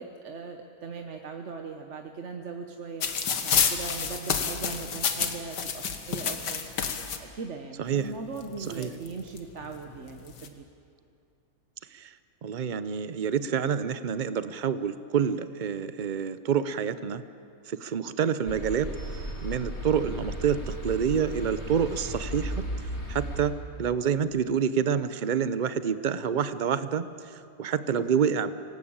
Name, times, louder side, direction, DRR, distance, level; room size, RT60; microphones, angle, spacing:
voice 1, 0.0-3.1 3.4-6.6 7.2-10.6 27.9-28.2, right 4 dB, 50° right, 4 dB, 1.3 m, -39 dB
sound 1, 3.0-7.2 8.1-8.2 8.4-9.4 10.1-10.5, left 6 dB, 85° left, 2.0 m, -29 dB
voice 2, 7.8-8.1 8.7-8.9 11.9-12.1 12.4-17.2 17.7-18.9 19.4-22.6 23.1-28.5, right 7 dB, 80° right, 13 dB, 0.4 m, -28 dB
sound 2, 18.5-23.5, right 1 dB, 40° left, 3.0 m, -35 dB
26.0 x 18.0 x 8.7 m, 2.7 s
omnidirectional pair, 1.8 m